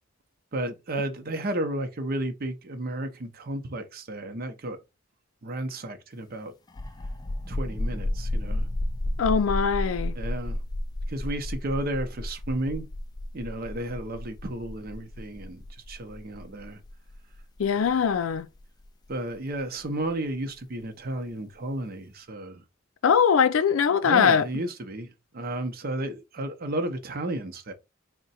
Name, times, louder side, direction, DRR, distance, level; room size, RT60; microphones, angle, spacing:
voice 1, 0.5-4.8 5.4-6.5 7.5-8.7 10.1-10.6 11.1-12.8 13.3-16.8 17.8-18.0 19.1-22.6 24.0-27.7, right 1 dB, 50° right, 0.7 m, -33 dB
sound 1, 6.7-20.1, left 1 dB, 20° left, 0.3 m, -32 dB
voice 2, 9.2-10.2 17.6-18.5 23.0-24.4, left 7 dB, 85° left, 0.4 m, -21 dB
3.7 x 2.1 x 4.1 m
head